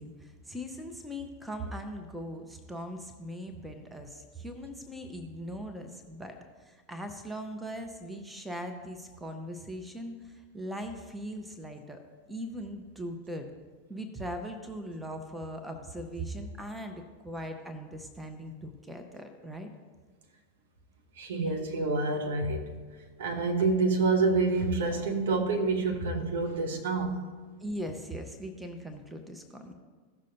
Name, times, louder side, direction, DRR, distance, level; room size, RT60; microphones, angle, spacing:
voice 1, 0.0-12.0 12.3-13.5 13.9-19.7 21.4-21.5 27.6-29.7, equal, 5° right, 0.9 m, -40 dB
voice 2, 21.2-22.8 23.2-27.2, right 3 dB, 60° right, 1.1 m, -27 dB
15.5 x 6.3 x 2.9 m
figure-of-eight pair, 90°, 0 cm